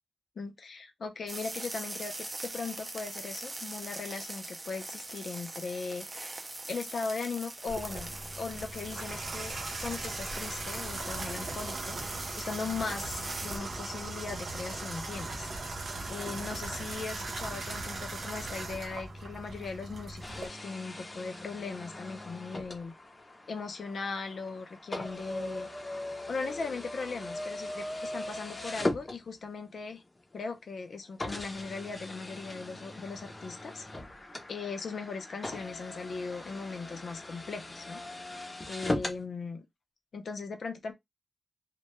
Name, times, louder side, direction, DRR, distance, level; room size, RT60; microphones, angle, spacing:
voice 1, 0.4-6.1 6.7-9.6 9.8-12.0 12.4-15.5 16.1-22.9 23.5-25.7 26.3-30.0 30.3-33.8 34.5-38.0 38.7-39.7 40.1-40.9, left 4 dB, 85° left, 0.5 m, -38 dB
sound 1, 1.3-13.6, right 2 dB, 30° right, 0.4 m, -42 dB
Water tap faucet / Bathtub (filling or washing), 7.7-20.5, right 2 dB, 85° right, 0.6 m, -39 dB
sound 2, 20.2-29.7 30.4-30.5 31.2-39.2, left 1 dB, 30° left, 0.5 m, -39 dB
2.2 x 2.1 x 2.8 m
wide cardioid pair, 135°, 0 cm